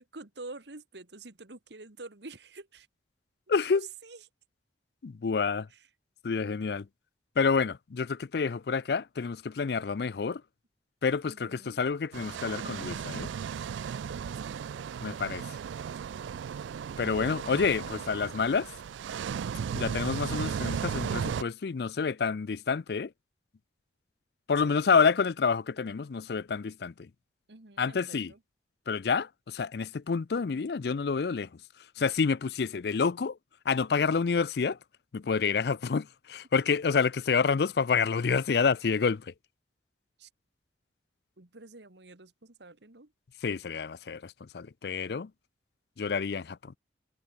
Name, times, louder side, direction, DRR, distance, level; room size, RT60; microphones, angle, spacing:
voice 1, 0.0-2.9 3.7-4.2 5.7-5.8 11.3-11.8 13.9-14.8 24.6-25.0 27.5-28.4 40.2-40.3 41.4-43.1, right 3 dB, 70° right, 1.8 m, -48 dB
voice 2, 3.5-3.9 5.0-5.7 6.2-6.9 7.4-10.4 11.0-13.3 15.0-15.4 17.0-18.7 19.7-23.1 24.5-27.1 27.8-28.3 28.9-31.5 32.0-33.4 33.7-34.8 35.1-39.3 43.4-45.3 46.0-46.8, left 5 dB, 60° left, 0.4 m, -28 dB
sound 1, 12.1-21.4, right 7 dB, 90° right, 0.3 m, -35 dB
head